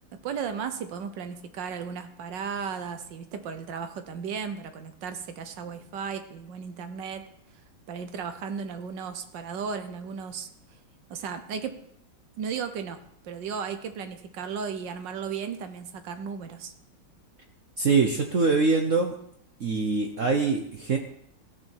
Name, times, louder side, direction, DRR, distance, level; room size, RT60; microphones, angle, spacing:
voice 1, 0.1-7.2 7.9-10.8 11.1-11.8 12.4-16.7, right 6 dB, 75° right, 9 dB, 1.5 m, -35 dB
voice 2, 17.8-19.2 19.6-21.0, right 4 dB, 50° right, 3 dB, 1.1 m, -23 dB
16.0 x 6.8 x 4.5 m, 0.70 s
omnidirectional pair, 2.0 m